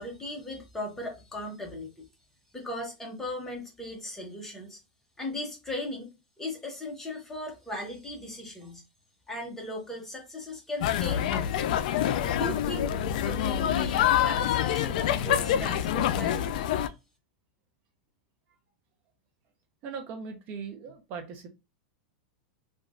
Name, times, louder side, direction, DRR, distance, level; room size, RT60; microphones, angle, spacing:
voice 1, 0.0-2.1 2.5-4.8 5.2-8.8 9.3-11.7 12.3-12.9 13.2-16.6, left 1 dB, 10° left, 0.8 m, -38 dB
sound 1, 10.8-16.9, left 10 dB, 65° left, 0.3 m, -26 dB
voice 2, 19.8-21.5, right 5 dB, 35° right, 0.5 m, -39 dB
3.0 x 2.3 x 2.4 m
supercardioid pair, 150°, 5 cm